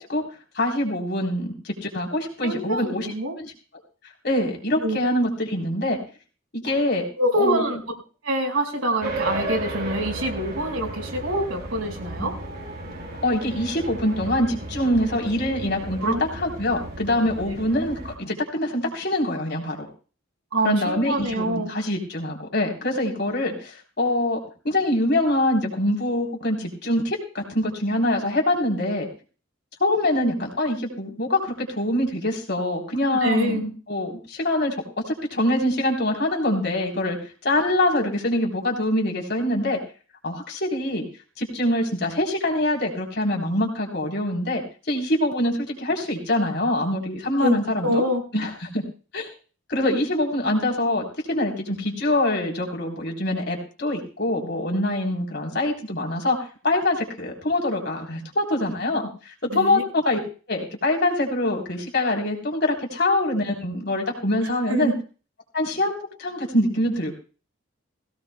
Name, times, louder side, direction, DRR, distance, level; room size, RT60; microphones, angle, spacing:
voice 1, 0.5-3.5 4.2-6.0 6.5-7.1 7.4-7.6 12.2-12.3 13.2-19.9 20.6-24.4 24.6-29.1 29.8-34.8 35.1-37.2 37.4-39.8 40.2-41.0 41.4-48.0 48.3-48.8 49.1-49.3 49.7-56.4 56.6-60.2 60.5-64.9 65.5-67.1, left 1 dB, 50° left, 0 dB, 3.6 m, -24 dB
voice 2, 2.4-3.4 4.8-5.0 7.2-7.8 8.2-12.3 16.0-16.3 17.4-17.6 20.5-21.7 33.2-33.6 47.4-48.2 59.5-59.8 64.4-65.0, right 1 dB, 90° right, 2 dB, 5.2 m, -25 dB
sound 1, 9.0-18.2, right 2 dB, 45° right, 3.4 m, -34 dB
19.5 x 17.0 x 2.3 m, 0.37 s
head